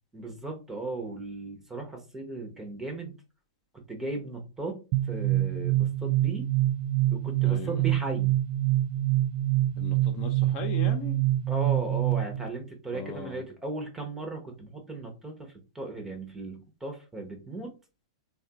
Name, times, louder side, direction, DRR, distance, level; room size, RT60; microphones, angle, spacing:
voice 1, 0.1-3.1 3.7-6.5 7.1-8.4 11.5-17.7, right 2 dB, 10° right, 0.9 m, -37 dB
sound 1, 4.9-12.5, right 14 dB, 45° right, 0.3 m, -26 dB
voice 2, 7.4-7.9 9.8-11.2 12.9-13.4, left 5 dB, 40° left, 0.8 m, -38 dB
3.2 x 2.4 x 2.8 m
hypercardioid pair, 115°, 3 cm